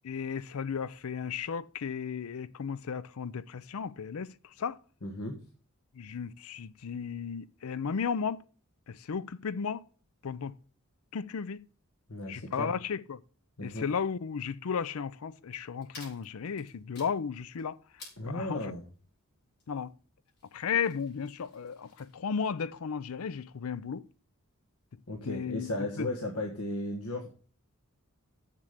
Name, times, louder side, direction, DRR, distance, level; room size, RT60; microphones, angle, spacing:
voice 1, 0.0-4.3 4.6-4.8 6.0-8.4 8.9-9.8 10.2-10.5 11.1-11.6 12.3-13.2 13.6-17.8 18.2-18.7 19.7-19.9 20.5-24.0 25.2-25.7 26.0-26.1, left 6 dB, 70° left, 0.5 m, -34 dB
voice 2, 5.0-5.3 12.1-12.8 13.6-13.9 18.2-18.8 25.1-27.3, left 1 dB, 85° left, 1.6 m, -35 dB
sound 1, 15.5-22.2, left 3 dB, 50° left, 5.7 m, -56 dB
7.4 x 7.3 x 6.5 m
head